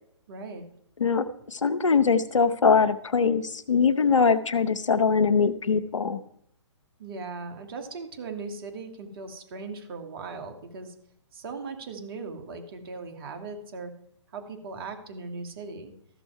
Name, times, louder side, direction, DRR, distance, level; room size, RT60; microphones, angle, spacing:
voice 1, 0.3-0.6 7.0-10.9 11.3-13.9 14.3-15.9, right 4 dB, 50° right, 6 dB, 2.0 m, -38 dB
voice 2, 1.0-6.2, left 5 dB, 80° left, 12 dB, 0.8 m, -22 dB
14.0 x 6.3 x 4.6 m, 0.73 s
figure-of-eight pair, 135°, 16 cm